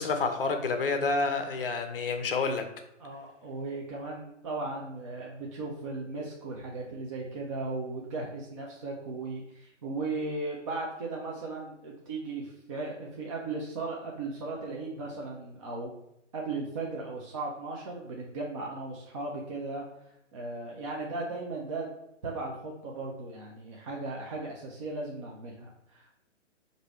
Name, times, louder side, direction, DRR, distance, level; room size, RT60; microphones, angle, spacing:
voice 1, 0.0-2.7, left 4 dB, 45° left, 6 dB, 0.6 m, -29 dB
voice 2, 3.0-15.9 16.3-19.8 20.3-21.9 22.2-26.2, right 3 dB, 25° right, -3 dB, 0.5 m, -37 dB
4.7 x 2.6 x 4.2 m, 0.83 s
figure-of-eight pair, 130°, 38 cm